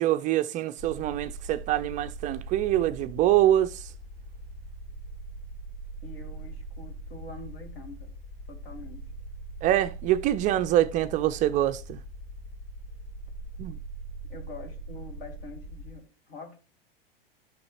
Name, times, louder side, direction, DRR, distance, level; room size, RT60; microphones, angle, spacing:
voice 1, 0.0-3.9 9.6-12.0 13.6-13.8, right 13 dB, 25° right, 0.3 m, -25 dB
sound 1, 0.8-15.9, right 2 dB, 85° left, 3.8 m, -41 dB
voice 2, 6.0-8.2 8.5-9.1 14.3-16.6, left 3 dB, 70° left, 2.5 m, -45 dB
11.5 x 6.3 x 2.9 m
hypercardioid pair, 105°, 30 cm